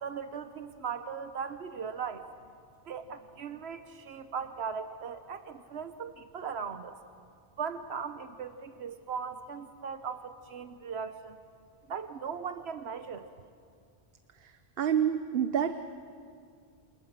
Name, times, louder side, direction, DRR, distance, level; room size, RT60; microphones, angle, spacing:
voice 1, 0.0-2.3 2.9-7.0 7.6-11.4 11.9-13.3, right 6 dB, 90° right, 9 dB, 1.3 m, -38 dB
voice 2, 14.8-15.8, right 9 dB, 70° right, 10 dB, 1.1 m, -27 dB
28.5 x 28.0 x 7.4 m, 2.2 s
omnidirectional pair, 1.0 m